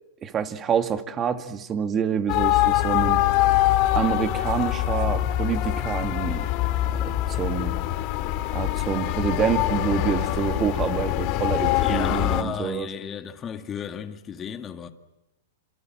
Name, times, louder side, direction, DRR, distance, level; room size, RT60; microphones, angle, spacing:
voice 1, 0.2-3.2 4.0-6.5 7.0-7.8 8.5-12.9, right 8 dB, 25° right, 2.1 m, -27 dB
sound 1, 2.3-12.4, left 15 dB, 45° left, 2.2 m, -24 dB
voice 2, 11.8-14.9, left 8 dB, 25° left, 2.0 m, -34 dB
28.5 x 27.0 x 7.6 m
hypercardioid pair, 135°, 0 cm